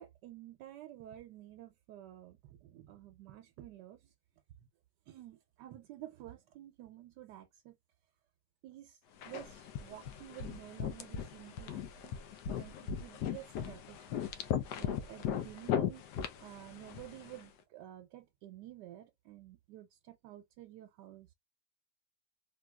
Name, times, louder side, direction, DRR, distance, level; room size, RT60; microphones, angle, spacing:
voice 1, 0.0-4.1 4.6-4.7 5.1-7.8 8.6-9.0 9.2-12.1 12.6-14.0 14.8-16.0 16.4-21.3, right 13 dB, 85° right, 1.2 m, -51 dB
sound 1, 9.2-17.4, left 9 dB, 80° left, 1.2 m, -38 dB
3.6 x 2.6 x 2.2 m
omnidirectional pair, 1.8 m